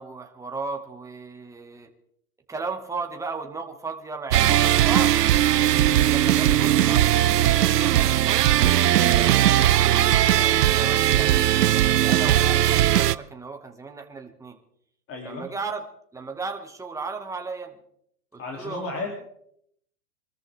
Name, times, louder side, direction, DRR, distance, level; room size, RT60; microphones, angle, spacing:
voice 1, 0.0-1.9 2.5-5.3 5.9-7.0 7.6-8.0 8.8-14.6 15.2-15.8 16.1-17.8 18.3-18.9, right 4 dB, 5° right, 3 dB, 1.7 m, -35 dB
sound 1, 4.3-13.2, right 12 dB, 85° right, 0.7 m, -19 dB
voice 2, 5.6-6.1 15.1-15.5 18.4-19.1, left 3 dB, 30° left, 1 dB, 2.9 m, -34 dB
25.0 x 13.5 x 3.5 m, 0.70 s
hypercardioid pair, 120°, 46 cm